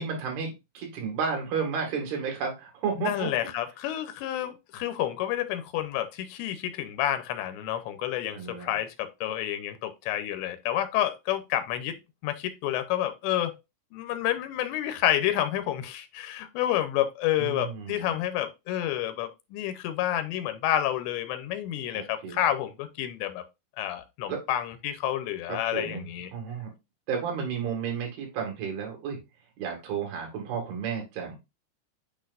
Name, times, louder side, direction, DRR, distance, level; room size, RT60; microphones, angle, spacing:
voice 1, 0.0-3.3 8.3-8.7 17.4-18.2 21.9-22.4 24.3-24.4 25.5-26.1 26.3-26.7 27.1-29.2 29.6-31.4, right 6 dB, 65° right, 3.9 m, -32 dB
voice 2, 3.0-12.0 12.2-13.5 13.9-23.4 23.8-26.3, left 12 dB, 85° left, 3.0 m, -29 dB
8.7 x 4.4 x 2.5 m
omnidirectional pair, 5.0 m